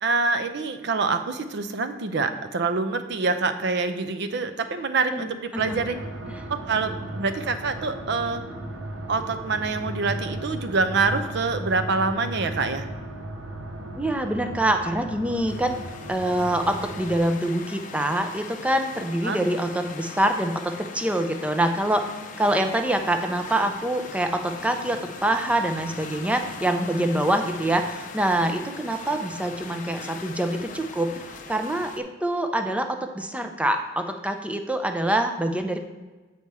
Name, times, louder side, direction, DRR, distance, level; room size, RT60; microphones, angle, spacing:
voice 1, 0.0-6.0 6.7-8.4 9.1-12.9 19.2-19.4, right 4 dB, 60° right, 9 dB, 0.6 m, -26 dB
voice 2, 5.1-5.8 6.3-6.5 14.0-15.8 16.1-22.0 22.4-32.9 33.1-35.8, right 1 dB, 5° right, 6 dB, 0.5 m, -25 dB
sound 1, 5.6-17.2, right 1 dB, 90° right, 0.8 m, -36 dB
sound 2, 15.5-32.0, left 4 dB, 40° left, 0.6 m, -40 dB
8.4 x 4.2 x 4.7 m, 1.3 s
head